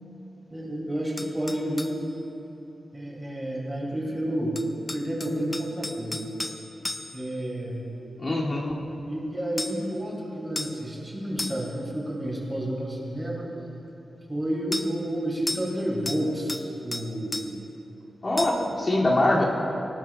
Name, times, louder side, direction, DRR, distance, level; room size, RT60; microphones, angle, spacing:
voice 1, 0.5-2.0 2.9-4.5 4.9-6.3 7.1-7.9 9.0-13.5 14.3-16.6 16.8-17.6, right 1 dB, 20° right, -3 dB, 2.7 m, -30 dB
sound 1, 1.2-2.0 4.6-7.3 9.6-9.9 10.6-10.8 11.4-11.8 14.7-14.9 15.5-15.8 16.1-16.7 16.9-17.5 18.4-18.7, left 2 dB, 25° left, 0.7 m, -34 dB
voice 2, 8.2-8.7 18.2-19.4, left 1 dB, 40° left, -6 dB, 2.7 m, -23 dB
19.0 x 18.0 x 2.4 m, 2.9 s
wide cardioid pair, 100°, 0 cm